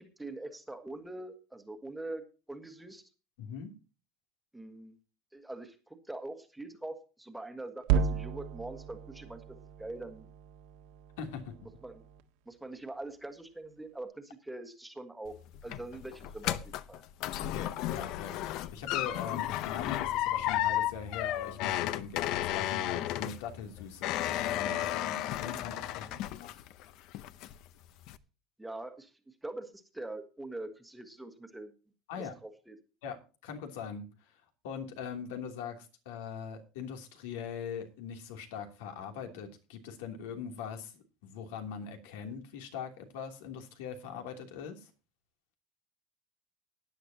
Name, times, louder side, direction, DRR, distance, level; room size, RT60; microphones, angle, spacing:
voice 1, 0.0-3.0 4.5-5.0 5.3-10.3 11.8-12.0 12.5-15.3 15.6-17.0 26.0-26.2 28.6-29.1 29.4-31.7 32.1-32.7, right 2 dB, 5° right, 6 dB, 1.5 m, -43 dB
voice 2, 3.4-3.7 11.2-11.5 17.4-18.5 18.7-26.1 26.4-26.5 32.1-32.3 33.0-33.2 33.4-34.1 34.6-44.9, left 7 dB, 85° left, 5 dB, 3.0 m, -41 dB
sound 1, 7.8-12.2, right 7 dB, 70° right, 1.6 m, -34 dB
sound 2, 15.3-26.8 27.1-27.7 28.1-28.2, left 13 dB, 50° left, 0.7 m, -33 dB
17.0 x 10.0 x 2.9 m, 0.33 s
cardioid pair, 165°, 0 cm